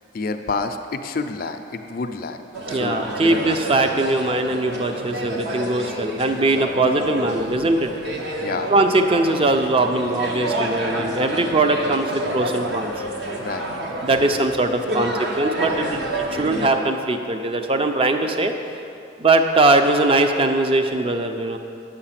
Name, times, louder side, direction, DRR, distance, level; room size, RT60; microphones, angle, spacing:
voice 1, 0.1-3.6 6.6-6.8 8.4-8.7 13.3-13.7, left 4 dB, 50° left, 7 dB, 0.4 m, -29 dB
sound 1, 2.5-16.7, right 1 dB, 65° right, 1.0 m, -29 dB
voice 2, 2.7-7.9 8.7-12.9 14.0-18.5 19.2-21.6, right 2 dB, 30° right, 6 dB, 0.5 m, -20 dB
8.8 x 6.8 x 5.8 m, 2.6 s
head